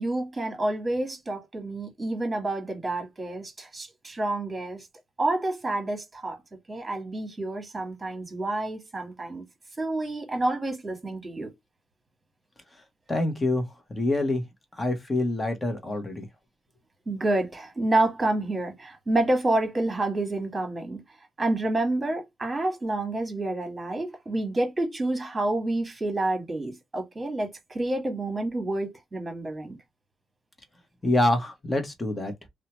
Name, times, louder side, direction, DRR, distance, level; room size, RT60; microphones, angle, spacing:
voice 1, 0.0-4.9 5.2-9.4 9.8-11.5 17.1-21.0 21.4-29.8, right 2 dB, 20° right, 1.4 m, -28 dB
voice 2, 13.1-13.6 13.9-14.4 14.8-16.3 31.0-32.3, left 1 dB, 20° left, 1.0 m, -26 dB
2.8 x 2.2 x 2.9 m
cardioid pair, 90°, 0 cm